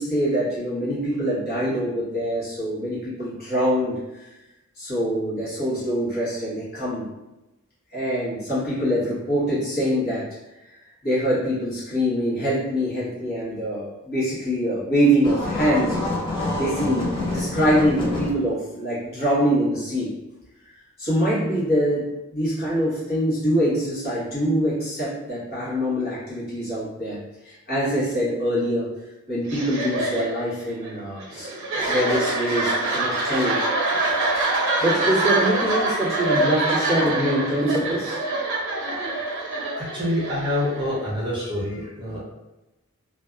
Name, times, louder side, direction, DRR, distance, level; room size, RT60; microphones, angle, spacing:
voice 1, 0.0-4.0 4.8-7.1 7.9-10.3 11.0-16.2 16.6-20.1 21.0-27.2 27.4-28.9 29.3-31.5 31.9-33.6 34.8-38.2, equal, 45° left, -10 dB, 1.2 m, -24 dB
sound 1, 15.2-18.3, left 2 dB, 25° left, 0.6 m, -27 dB
sound 2, 29.4-41.1, right 2 dB, 60° right, 0.6 m, -25 dB
voice 2, 39.8-42.2, left 1 dB, 20° right, -6 dB, 0.7 m, -26 dB
2.5 x 2.2 x 2.4 m, 0.98 s
head